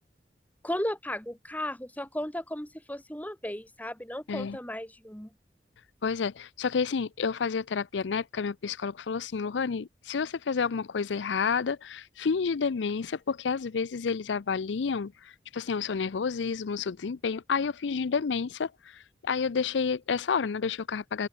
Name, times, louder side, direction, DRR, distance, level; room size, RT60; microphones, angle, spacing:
voice 1, 0.6-5.3, left 1 dB, 10° left, 3.0 m, -35 dB
voice 2, 6.0-21.3, left 5 dB, 85° left, 0.5 m, -30 dB
head